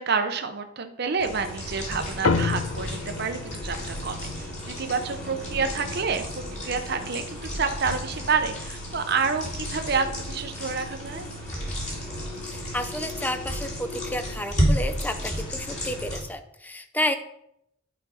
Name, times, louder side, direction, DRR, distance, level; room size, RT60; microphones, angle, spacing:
voice 1, 0.0-6.2 6.6-11.3, right 5 dB, 50° right, 7 dB, 0.7 m, -28 dB
sound 1, 1.2-16.2, equal, 35° left, 2.7 m, -32 dB
sound 2, 2.2-7.0, left 4 dB, 85° left, 0.5 m, -31 dB
voice 2, 12.4-17.2, left 1 dB, 10° left, 8 dB, 0.5 m, -31 dB
11.0 x 5.1 x 4.2 m, 0.79 s
head